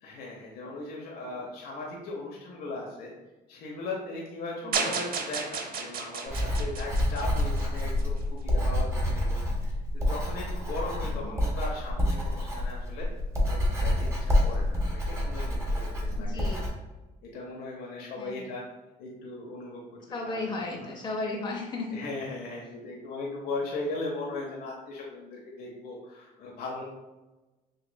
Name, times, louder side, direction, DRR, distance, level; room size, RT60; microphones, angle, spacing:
voice 1, 0.0-3.1 3.5-13.1 13.5-16.5 17.2-18.6 19.0-20.0 20.3-20.9 21.9-26.8, left 2 dB, 65° left, -2 dB, 0.8 m, -38 dB
sound 1, 4.7-8.0, right 5 dB, 60° right, 0.6 m, -33 dB
Writing, 6.3-16.7, left 1 dB, 15° right, 1.3 m, -28 dB
voice 2, 11.0-11.4 16.2-16.7 18.2-18.5 20.1-22.0, left 3 dB, 25° left, -1 dB, 0.6 m, -35 dB
6.3 x 2.4 x 2.2 m, 1.1 s
cardioid pair, 110°, 17 cm